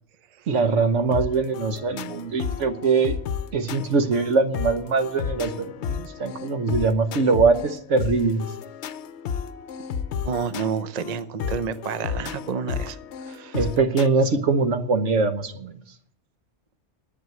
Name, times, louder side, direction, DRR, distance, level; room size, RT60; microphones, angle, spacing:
voice 1, 0.5-3.2 3.5-8.5 13.5-15.8, right 4 dB, 75° right, 9 dB, 1.4 m, -22 dB
sound 1, 1.1-14.1, left 7 dB, 70° left, 0.9 m, -33 dB
voice 2, 10.2-13.0 13.3-13.6, right 6 dB, 40° right, 12 dB, 0.7 m, -29 dB
11.0 x 8.6 x 7.8 m, 0.62 s
omnidirectional pair, 1.3 m